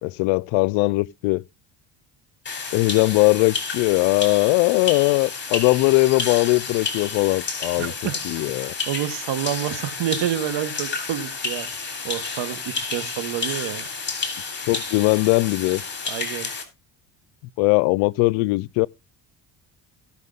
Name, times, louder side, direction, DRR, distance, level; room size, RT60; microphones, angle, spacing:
voice 1, 0.0-1.4 2.7-7.9 8.2-8.7 14.7-15.8 17.6-18.9, left 24 dB, 80° left, 0.6 m, -20 dB
sound 1, 2.5-16.6, left 4 dB, 25° left, 3.6 m, -31 dB
voice 2, 7.8-8.2 8.6-11.7 12.0-13.9 16.0-16.5, right 11 dB, 65° right, 1.7 m, -28 dB
16.5 x 5.8 x 3.9 m
supercardioid pair, 90°, 46 cm